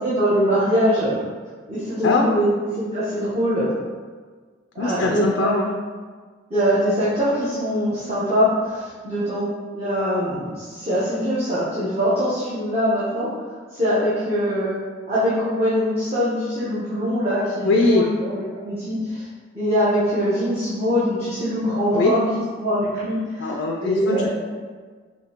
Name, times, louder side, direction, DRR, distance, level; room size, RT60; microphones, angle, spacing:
voice 1, 0.0-1.2 1.7-2.5 2.8-3.7 4.7-5.5 6.5-9.5 9.7-13.4 13.7-14.8 15.1-19.2 19.5-22.2 22.6-23.5 23.8-24.3, equal, 30° right, -12 dB, 0.9 m, -22 dB
voice 2, 4.8-5.7 17.6-18.1 21.9-22.2 23.4-24.3, left 3 dB, 75° left, 0 dB, 0.3 m, -21 dB
5.0 x 2.7 x 2.8 m, 1.5 s
head